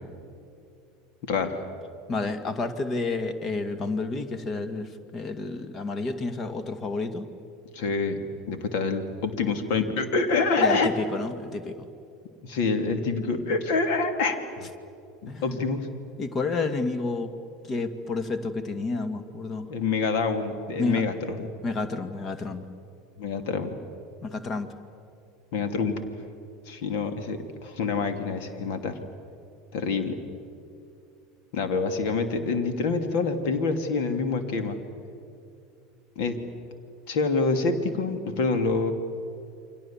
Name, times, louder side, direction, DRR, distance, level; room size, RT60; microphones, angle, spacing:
voice 1, 1.3-1.6 7.7-10.9 12.4-14.4 15.4-15.9 19.7-21.5 23.2-23.8 25.5-26.0 26.7-29.0 29.7-30.2 31.5-34.8 36.2-36.4 37.1-38.9, left 4 dB, 60° left, 8 dB, 2.7 m, -26 dB
voice 2, 2.1-7.3 10.6-11.9 15.3-15.6 16.2-17.3 17.7-19.7 20.8-21.0 21.6-22.7 24.2-24.7, left 3 dB, 35° left, 10 dB, 2.2 m, -30 dB
29.0 x 24.5 x 7.4 m, 2.5 s
hypercardioid pair, 75°, 0 cm